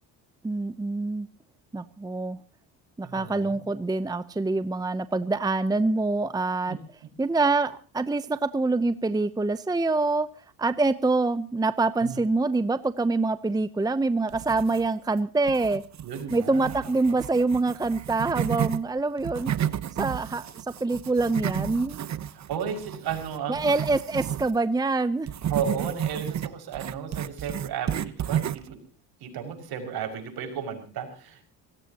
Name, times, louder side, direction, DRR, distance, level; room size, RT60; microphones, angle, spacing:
voice 1, 0.4-1.3 1.7-2.4 3.0-6.8 7.2-10.3 10.6-15.8 16.3-19.5 20.0-22.0 23.5-25.3, right 3 dB, 10° right, 13 dB, 0.7 m, -25 dB
voice 2, 3.0-3.6 6.7-6.8 12.0-12.2 16.0-16.7 22.3-23.7 25.5-28.8 29.2-31.4, right 7 dB, 65° right, 5 dB, 6.0 m, -34 dB
sound 1, 14.3-15.1 15.5-18.8 19.2-24.5 25.3-28.7, right 10 dB, 40° right, 1.0 m, -32 dB
25.5 x 17.0 x 2.9 m, 0.37 s
cardioid pair, 95°, 40 cm